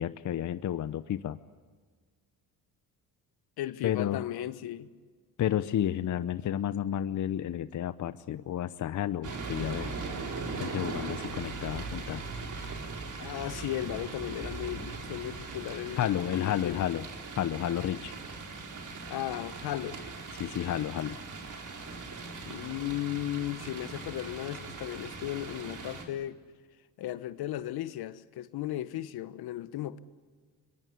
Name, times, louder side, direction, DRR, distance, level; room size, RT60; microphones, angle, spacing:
voice 1, 0.0-1.4 3.8-4.2 5.4-9.9 10.6-12.2 16.0-17.1 17.4-18.1 20.3-21.2, left 11 dB, 45° left, 0.8 m, -31 dB
voice 2, 3.6-4.9 13.2-16.8 19.1-20.0 22.5-26.4 27.0-30.0, left 13 dB, 65° left, 1.2 m, -36 dB
sound 1, 9.2-26.1, right 3 dB, 45° right, 4.4 m, -40 dB
23.0 x 21.5 x 9.9 m
supercardioid pair, 65°, 41 cm